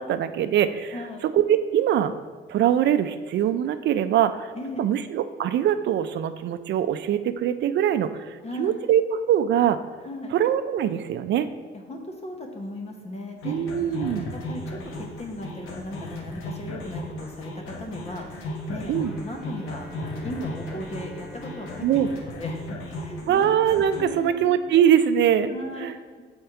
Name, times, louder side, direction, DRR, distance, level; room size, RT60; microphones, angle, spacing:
voice 1, 0.0-1.0 1.3-2.1 2.5-4.5 4.8-9.8 10.3-11.5 13.4-14.3 18.9-19.1 21.8-22.1 23.3-25.5 25.8-25.9, right 10 dB, 65° right, 11 dB, 0.4 m, -22 dB
voice 2, 0.9-1.3 4.5-5.0 8.4-8.8 10.0-10.3 11.9-13.6 14.0-18.9 19.2-21.8 22.2-23.5 23.9-24.4 25.5-26.2, left 1 dB, 30° left, 2 dB, 0.9 m, -37 dB
sound 1, 13.4-24.0, left 1 dB, 90° left, 1.1 m, -36 dB
Bowed string instrument, 19.0-23.9, left 1 dB, ahead, 1.3 m, -46 dB
6.5 x 4.3 x 4.6 m, 1.5 s
cardioid pair, 90°, 20 cm